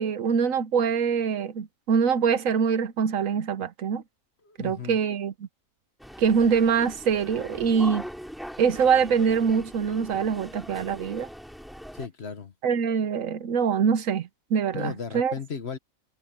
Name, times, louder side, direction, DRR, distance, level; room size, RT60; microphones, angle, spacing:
voice 1, 0.0-4.0 4.6-5.3 6.2-8.1 8.6-11.3 12.6-15.3, right 6 dB, 70° right, 1.2 m, -24 dB
voice 2, 4.4-5.0 11.9-12.5 14.7-15.8, left 6 dB, 50° left, 1.5 m, -35 dB
sound 1, 6.0-12.1, equal, ahead, 2.7 m, -41 dB
omnidirectional pair, 1.5 m